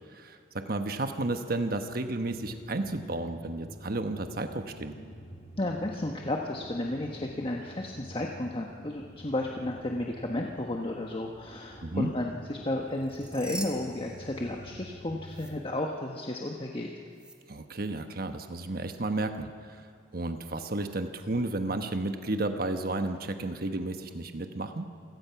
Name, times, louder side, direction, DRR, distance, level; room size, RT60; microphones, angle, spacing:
voice 1, 0.1-4.9 11.8-12.1 17.5-19.9 20.1-24.9, right 2 dB, 55° right, 7 dB, 1.2 m, -32 dB
sound 1, 2.3-15.5, equal, 85° left, 6.3 m, -49 dB
voice 2, 5.6-16.9, left 1 dB, 30° left, 1 dB, 1.3 m, -33 dB
sound 2, 12.9-14.9 15.3-15.5 17.1-17.4, right 1 dB, 5° right, 1.8 m, -43 dB
27.0 x 17.5 x 5.9 m, 2.4 s
head